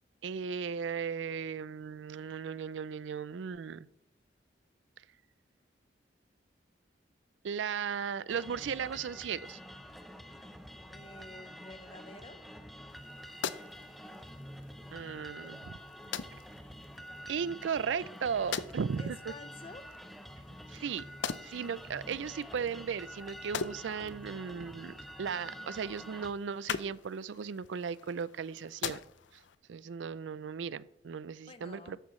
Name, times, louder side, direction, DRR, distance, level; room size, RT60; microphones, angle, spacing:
voice 1, 0.2-3.9 7.4-9.6 14.9-15.8 17.3-19.2 20.7-21.0 21.4-29.0 29.7-32.0, right 6 dB, 85° right, 0.4 m, -36 dB
sound 1, 8.3-26.3, equal, ahead, 0.7 m, -48 dB
voice 2, 10.9-12.6 19.0-20.1 21.9-22.3 31.5-32.0, left 2 dB, 30° left, 0.9 m, -51 dB
sound 2, 12.9-29.5, left 7 dB, 85° left, 0.6 m, -44 dB
13.5 x 10.0 x 3.2 m
head